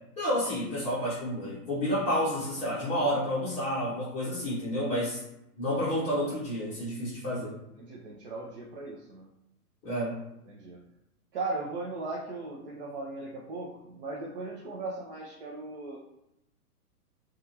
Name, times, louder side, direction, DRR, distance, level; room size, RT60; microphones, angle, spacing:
voice 1, 0.2-5.2 5.6-7.6 9.8-10.1, equal, 15° left, -9 dB, 0.6 m, -30 dB
voice 2, 7.8-9.3 10.5-10.8 11.3-16.0, right 3 dB, 40° right, -4 dB, 0.5 m, -37 dB
2.6 x 2.3 x 2.7 m, 0.86 s
hypercardioid pair, 130°, 47 cm